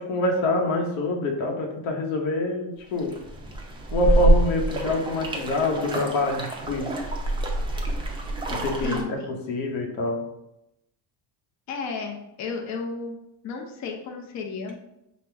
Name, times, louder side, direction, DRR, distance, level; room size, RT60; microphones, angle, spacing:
voice 1, 0.0-3.2 3.9-6.9 8.5-10.3, left 2 dB, 90° left, 2 dB, 1.0 m, -26 dB
sound 1, 3.0-9.0, right 2 dB, 10° right, 0.5 m, -26 dB
voice 2, 8.8-9.3 11.7-13.2 13.4-14.8, left 4 dB, 40° left, 3 dB, 0.6 m, -33 dB
5.4 x 2.2 x 3.4 m, 0.86 s
cardioid pair, 135°, 45 cm